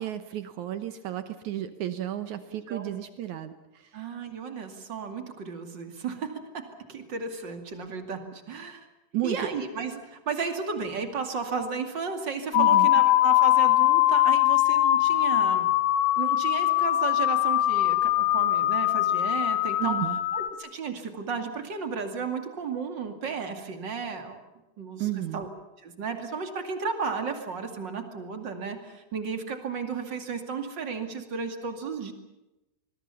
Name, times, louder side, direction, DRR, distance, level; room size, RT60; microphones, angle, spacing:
voice 1, 0.0-4.0 9.1-9.5 12.5-12.9 19.8-20.2 25.0-25.4, right 13 dB, 80° right, 10 dB, 1.7 m, -32 dB
voice 2, 3.9-6.3 6.5-6.6 6.9-8.8 9.2-15.7 16.2-20.0 20.3-24.4 24.8-25.5 25.8-32.1, right 5 dB, 35° right, 6 dB, 2.2 m, -34 dB
sound 1, 12.5-20.5, left 15 dB, 80° left, 3.1 m, -22 dB
25.5 x 21.5 x 7.0 m, 0.99 s
omnidirectional pair, 4.8 m